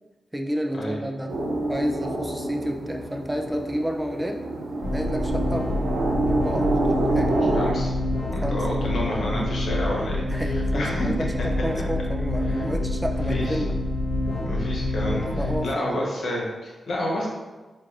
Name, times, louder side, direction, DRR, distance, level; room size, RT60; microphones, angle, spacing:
voice 1, 0.3-1.3 1.7-4.4 4.9-5.7 6.2-7.4 8.4-9.4 10.3-13.7 15.0-16.1, equal, 15° right, 3 dB, 0.4 m, -31 dB
sound 1, 1.3-7.7, right 2 dB, 85° right, 0.5 m, -27 dB
sound 2, 4.8-15.6, left 1 dB, 50° left, 1.5 m, -27 dB
voice 2, 7.5-7.9 8.3-10.4 10.7-11.1 12.4-12.7 13.3-13.6 14.4-17.3, left 1 dB, 70° left, -3 dB, 1.0 m, -29 dB
4.5 x 2.5 x 2.5 m, 1.2 s
supercardioid pair, 40°, 0 cm